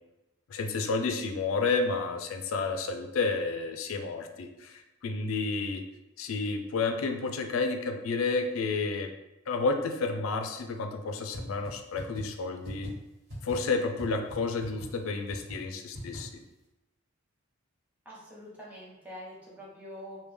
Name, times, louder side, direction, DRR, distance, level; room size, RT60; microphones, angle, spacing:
voice 1, 0.5-5.8 6.2-9.1 9.5-12.9 13.4-16.4, left 4 dB, 70° left, 5 dB, 0.4 m, -31 dB
sound 1, 11.3-11.4 11.6-11.7 12.0-12.2 12.6-12.9 13.3-13.5 14.0-14.1 14.3-14.4 14.6-14.9 15.3-15.5 15.9-16.2, left 1 dB, 65° right, 1.5 m, -41 dB
voice 2, 18.0-20.2, equal, 10° right, -7 dB, 1.0 m, -45 dB
3.2 x 2.2 x 3.4 m, 0.98 s
head